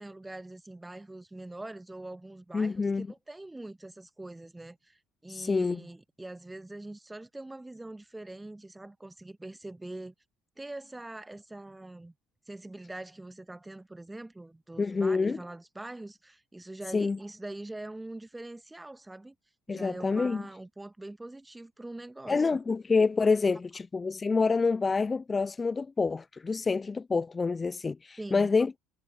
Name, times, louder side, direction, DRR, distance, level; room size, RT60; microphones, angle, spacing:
voice 1, 0.0-10.1 10.6-12.1 12.5-19.3 19.7-22.5 28.2-28.5, right 2 dB, 10° right, 1.7 m, -43 dB
voice 2, 2.5-3.1 5.3-5.8 14.8-15.4 16.9-17.2 19.7-20.4 22.3-28.8, left 4 dB, 25° left, 0.5 m, -27 dB
figure-of-eight pair, 60°, 0 cm